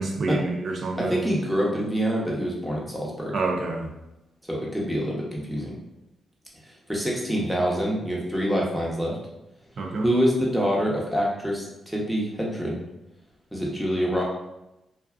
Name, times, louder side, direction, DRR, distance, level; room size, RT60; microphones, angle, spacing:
voice 1, 0.0-1.3 3.3-3.9 9.8-10.0, right 3 dB, 60° right, 1 dB, 0.5 m, -27 dB
voice 2, 1.0-3.3 4.5-5.8 6.6-9.2 10.0-12.8 13.5-14.2, equal, 5° right, -3 dB, 0.9 m, -26 dB
2.6 x 2.2 x 2.3 m, 0.93 s
supercardioid pair, 60°, 0 cm